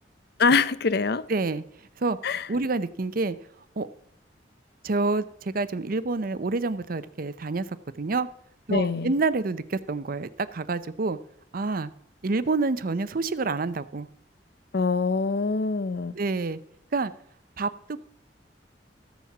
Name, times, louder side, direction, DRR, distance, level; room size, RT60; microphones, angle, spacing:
voice 1, 0.4-1.2 2.2-2.5 8.7-9.1 14.7-16.1, left 4 dB, 65° left, 0.7 m, -24 dB
voice 2, 1.3-1.6 2.0-2.2 2.5-3.4 3.8-3.9 4.8-7.6 7.9-8.3 8.7-11.2 11.5-11.9 12.2-14.1 16.1-16.6 16.9-17.1 17.6-18.0, right 3 dB, 55° right, 0.6 m, -27 dB
14.5 x 7.3 x 6.0 m
head